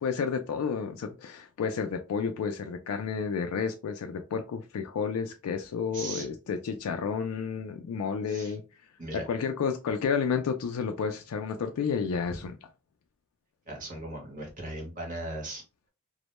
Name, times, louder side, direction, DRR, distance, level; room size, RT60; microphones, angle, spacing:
voice 1, 0.0-8.6 9.1-12.5, left 6 dB, 75° left, 0.3 m, -31 dB
voice 2, 5.9-6.3 8.3-8.5 9.0-9.3 12.3-12.4 13.7-15.6, right 1 dB, 35° right, 0.9 m, -38 dB
2.1 x 2.1 x 2.9 m
head